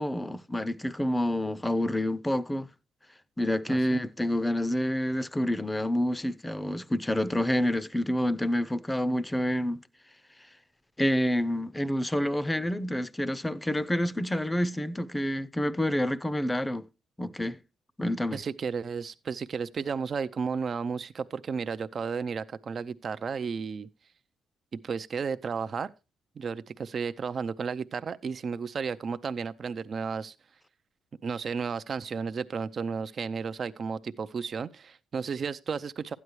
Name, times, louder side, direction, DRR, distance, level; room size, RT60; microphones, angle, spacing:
voice 1, 0.0-2.7 3.4-9.8 11.0-16.9 17.2-17.6 18.0-18.4, left 1 dB, 10° left, 0.6 m, -28 dB
voice 2, 3.7-4.0 18.3-23.9 24.7-25.9 26.4-30.3 31.2-36.1, right 5 dB, 45° right, 0.4 m, -33 dB
12.5 x 9.5 x 3.1 m
cardioid pair, 90°, 0 cm